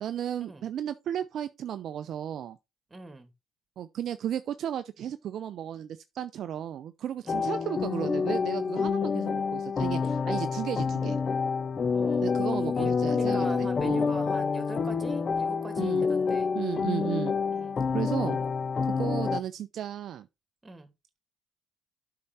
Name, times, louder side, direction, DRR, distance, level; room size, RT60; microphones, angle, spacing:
voice 1, 0.0-2.6 3.8-11.2 12.2-14.1 15.8-16.1 16.5-17.3 17.9-18.4 18.8-20.3, right 10 dB, 60° right, 0.5 m, -34 dB
voice 2, 2.9-3.3 7.2-7.6 11.9-16.5 17.5-17.8 20.6-20.9, right 3 dB, 20° right, 2.7 m, -42 dB
sound 1, 7.3-19.4, left 5 dB, 40° left, 0.9 m, -28 dB
8.5 x 5.8 x 4.2 m
supercardioid pair, 70°, 0 cm